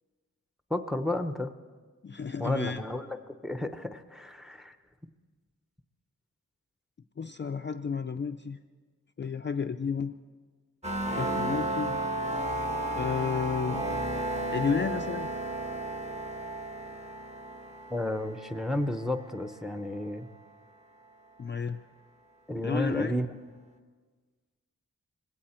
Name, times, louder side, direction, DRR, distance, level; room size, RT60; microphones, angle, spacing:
voice 1, 0.7-1.5 2.4-4.8 17.9-20.3 22.5-23.3, left 1 dB, ahead, 9 dB, 0.7 m, -32 dB
voice 2, 2.0-2.8 7.2-8.6 9.2-10.1 11.2-12.0 12.9-13.8 14.5-15.3 21.4-21.8 22.6-23.1, left 6 dB, 35° left, 6 dB, 0.4 m, -31 dB
sound 1, 10.8-19.5, right 1 dB, 20° right, 1.1 m, -33 dB
19.5 x 16.5 x 4.3 m, 1.5 s
wide cardioid pair, 120°, 32 cm